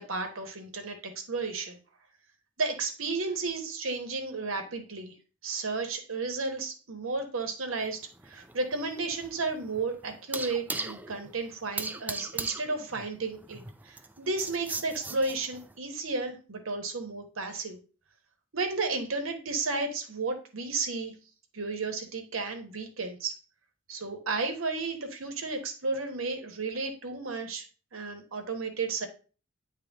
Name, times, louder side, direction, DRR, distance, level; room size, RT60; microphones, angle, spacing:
voice 1, 0.0-1.8 2.6-5.1 5.4-8.0 8.2-17.8 18.5-21.1 21.5-23.3 23.9-27.6 27.9-29.1, right 3 dB, 90° right, 5 dB, 1.1 m, -33 dB
sound 1, 7.8-15.7, right 3 dB, 10° right, 0.3 m, -39 dB
8.6 x 3.2 x 3.4 m, 0.35 s
head